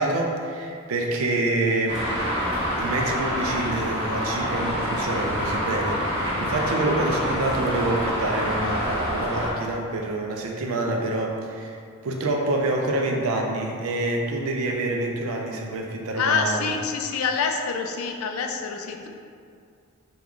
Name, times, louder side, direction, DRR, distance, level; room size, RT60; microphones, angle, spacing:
voice 1, 0.0-2.1 2.7-11.8 12.0-16.7, right 2 dB, 65° right, 1 dB, 0.4 m, -27 dB
Traffic noise roadway noise, 1.9-9.5, equal, 25° right, 0.7 m, -27 dB
voice 2, 16.2-19.1, left 5 dB, 70° left, 4 dB, 0.3 m, -26 dB
3.6 x 2.3 x 3.1 m, 2.3 s
head